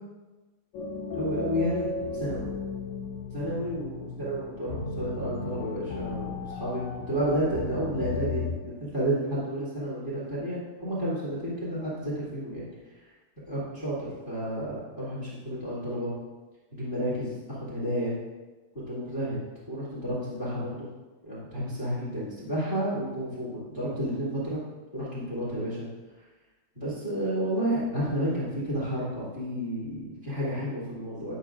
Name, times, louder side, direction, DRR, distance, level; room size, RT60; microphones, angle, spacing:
sound 1, 0.7-8.5, left 4 dB, 75° left, 2.1 m, -35 dB
voice 1, 1.1-2.5 3.3-12.7 13.5-16.1 16.7-18.1 18.9-19.4 19.7-20.9 21.2-24.6 24.9-25.9 26.7-31.3, equal, 20° left, -8 dB, 1.3 m, -31 dB
11.5 x 6.7 x 2.5 m, 1.2 s
omnidirectional pair, 4.9 m